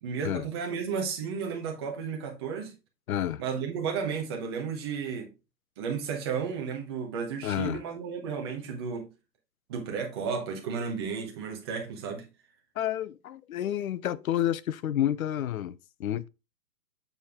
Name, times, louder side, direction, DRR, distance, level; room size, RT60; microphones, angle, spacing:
voice 1, 0.0-2.7 3.4-5.3 5.8-9.1 9.7-12.3, right 6 dB, 15° right, 0.8 m, -33 dB
voice 2, 3.1-3.4 7.4-7.8 12.8-16.3, left 11 dB, 55° left, 0.5 m, -30 dB
6.9 x 4.3 x 3.5 m
hypercardioid pair, 160°, 50 cm